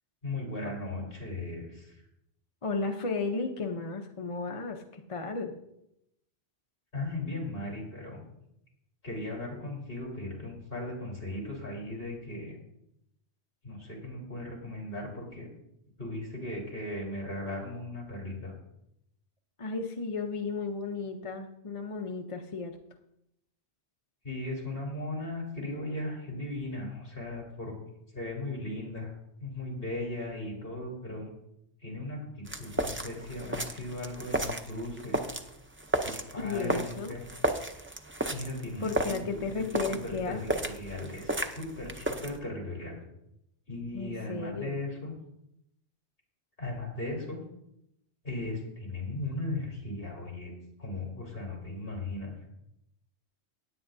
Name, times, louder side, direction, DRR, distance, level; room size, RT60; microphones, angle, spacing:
voice 1, 0.2-2.0 6.9-8.2 9.0-12.6 13.6-15.5 16.0-18.5 24.2-27.7 28.1-29.1 29.4-31.3 31.8-35.2 36.0-37.2 38.3-39.6 39.9-43.0 43.7-45.1 46.6-47.4 48.2-50.5 50.8-52.3, left 2 dB, 55° left, -2 dB, 3.7 m, -37 dB
voice 2, 2.6-5.5 19.6-22.7 36.4-37.1 38.8-40.6 43.9-44.8, left 4 dB, 35° left, 3 dB, 0.7 m, -34 dB
sound 1, 32.5-42.4, right 1 dB, 15° right, 0.4 m, -34 dB
16.5 x 9.8 x 2.7 m, 0.80 s
omnidirectional pair, 1.2 m